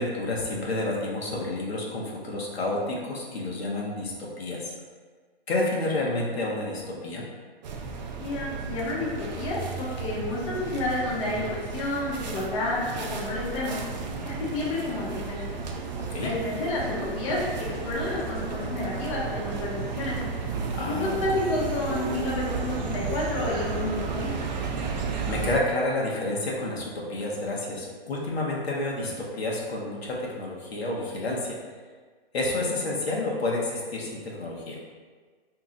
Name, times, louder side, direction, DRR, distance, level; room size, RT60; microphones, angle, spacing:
voice 1, 0.0-4.7 5.5-7.3 16.0-16.3 20.7-21.2 25.3-31.6 32.3-34.8, left 2 dB, 90° left, -3 dB, 0.9 m, -30 dB
sound 1, 7.6-25.6, right 4 dB, 45° right, 0.4 m, -33 dB
voice 2, 8.2-13.8 14.2-15.5 16.2-17.4 17.8-20.2 20.8-24.3, left 2 dB, 35° left, -5 dB, 0.7 m, -30 dB
2.8 x 2.3 x 3.8 m, 1.5 s
hypercardioid pair, 150°, 31 cm